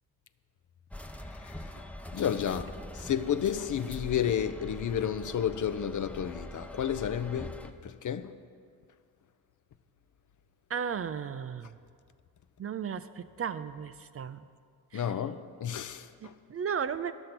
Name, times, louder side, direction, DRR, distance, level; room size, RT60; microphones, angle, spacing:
sound 1, 0.9-7.7, left 1 dB, 5° left, 0.6 m, -43 dB
voice 1, 1.2-8.4 14.9-16.3, left 9 dB, 50° left, 0.6 m, -32 dB
voice 2, 10.7-11.7 12.6-14.4 16.5-17.1, right 7 dB, 35° right, 0.4 m, -34 dB
11.0 x 6.6 x 5.9 m
supercardioid pair, 45°, 39 cm